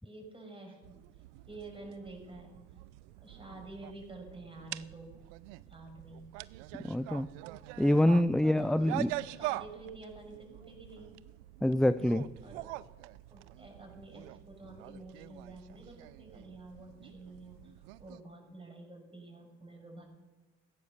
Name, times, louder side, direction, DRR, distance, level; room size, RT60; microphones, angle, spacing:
voice 1, 0.0-2.6 3.2-5.2 5.7-6.3 8.2-11.2 12.4-12.8 13.3-20.0, right 2 dB, 15° right, 1 dB, 6.2 m, -49 dB
sound 1, 0.8-18.2, right 18 dB, 90° right, 0.5 m, -45 dB
voice 2, 6.8-7.3 7.8-9.1 11.6-12.3, left 1 dB, ahead, 14 dB, 0.4 m, -26 dB
15.5 x 9.6 x 6.8 m, 1.2 s
hypercardioid pair, 60°, 35 cm